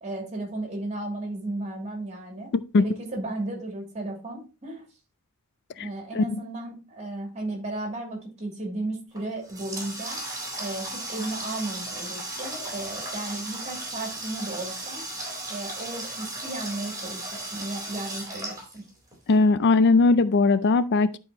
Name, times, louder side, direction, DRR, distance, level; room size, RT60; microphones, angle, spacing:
voice 1, 0.0-4.9 5.8-10.2 10.6-15.0 15.5-18.8, right 2 dB, 35° right, 2.7 m, -34 dB
Water tap faucet, 9.1-19.3, right 2 dB, 15° right, 3.8 m, -36 dB
voice 2, 19.3-21.2, left 3 dB, 55° left, 0.4 m, -19 dB
11.0 x 4.8 x 2.9 m
head